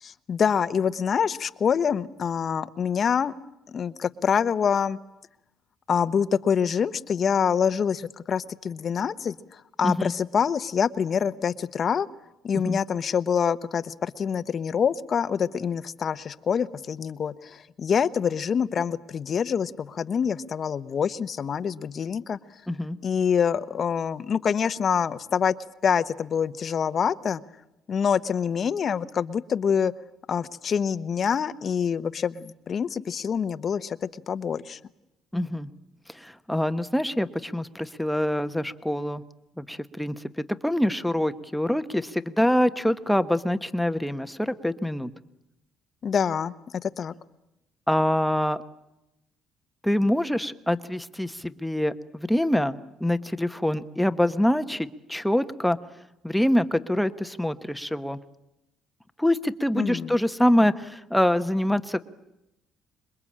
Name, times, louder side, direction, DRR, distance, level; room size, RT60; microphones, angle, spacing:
voice 1, 0.0-3.3 3.7-5.0 5.9-12.1 12.4-22.4 23.0-25.5 25.8-27.4 27.9-29.9 30.3-34.8 46.0-47.1 59.8-60.1, left 7 dB, 45° left, 13 dB, 1.0 m, -26 dB
voice 2, 22.7-23.0 35.3-35.7 36.1-39.2 39.6-40.2 40.6-45.1 47.9-48.6 49.8-55.8 56.2-58.2 59.2-62.0, left 1 dB, 5° left, 11 dB, 1.1 m, -25 dB
27.0 x 22.5 x 8.7 m, 0.90 s
cardioid pair, 115°, 0 cm